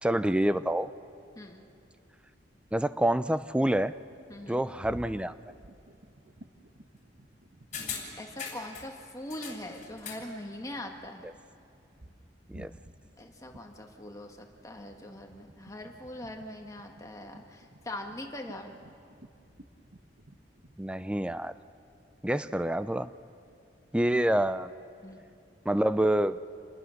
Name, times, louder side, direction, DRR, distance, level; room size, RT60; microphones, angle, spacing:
voice 1, 0.0-0.9 2.7-3.9 4.5-5.3 12.5-12.7 20.8-21.5 22.2-23.1 23.9-24.7 25.7-26.4, right 1 dB, 5° right, 13 dB, 0.5 m, -27 dB
sound 1, 4.0-9.1 9.3-21.8, right 1 dB, 60° right, 1.2 m, -54 dB
voice 2, 4.3-4.6 8.2-11.2 13.2-18.7 25.0-25.2, left 1 dB, 20° left, 2 dB, 1.7 m, -42 dB
sound 2, 7.7-8.9 9.3-10.3 10.6-10.7, left 6 dB, 45° left, 4.2 m, -40 dB
27.5 x 20.5 x 6.5 m, 2.6 s
head